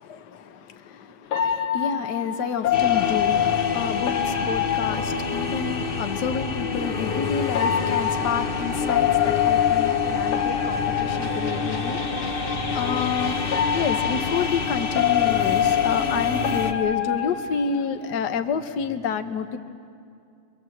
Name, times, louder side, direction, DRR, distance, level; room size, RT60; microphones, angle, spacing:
voice 1, 0.1-12.0 12.7-13.4 13.7-19.6, left 7 dB, 60° left, 8 dB, 1.5 m, -29 dB
sound 1, 1.3-5.9 7.5-12.1 13.5-18.1, left 10 dB, 75° left, 2.1 m, -25 dB
sound 2, 2.7-16.7, left 4 dB, 35° left, 0.9 m, -28 dB
24.5 x 23.0 x 7.8 m, 2.5 s
omnidirectional pair, 2.3 m